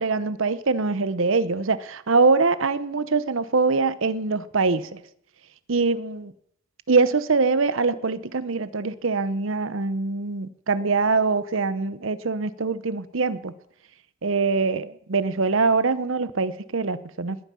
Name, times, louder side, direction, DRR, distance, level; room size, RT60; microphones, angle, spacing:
voice 1, 0.0-5.0 5.7-6.3 6.9-13.5 14.2-17.4, right 4 dB, 70° right, 0.8 m, -23 dB
20.5 x 9.3 x 7.5 m
head